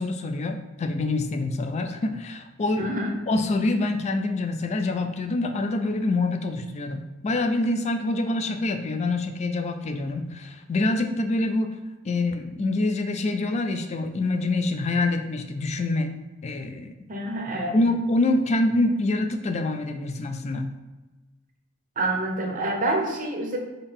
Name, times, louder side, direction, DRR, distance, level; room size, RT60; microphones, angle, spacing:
voice 1, 0.0-2.9 3.3-11.8 12.0-16.1 16.4-16.9 17.7-20.7, left 2 dB, 30° left, 6 dB, 0.3 m, -26 dB
voice 2, 2.8-3.2 17.1-17.8 22.0-23.6, right 2 dB, 40° right, 1 dB, 0.7 m, -27 dB
3.8 x 2.6 x 3.5 m, 1.2 s
head